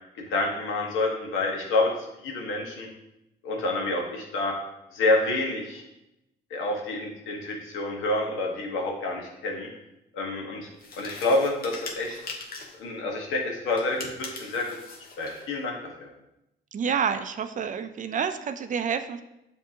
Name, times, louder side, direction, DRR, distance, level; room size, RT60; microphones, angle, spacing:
voice 1, 0.3-1.9 2.2-2.9 3.4-4.6 4.9-5.8 6.5-9.7 10.1-10.7 11.0-12.2 12.8-14.8 15.2-15.7 16.0-16.1, left 2 dB, 90° left, 0 dB, 1.0 m, -28 dB
sound 1, 10.8-12.8 13.7-15.5, left 3 dB, 50° left, 0.9 m, -41 dB
voice 2, 16.7-19.2, right 7 dB, 40° right, 9 dB, 0.4 m, -28 dB
7.1 x 2.7 x 2.7 m, 0.89 s
cardioid pair, 90°, 20 cm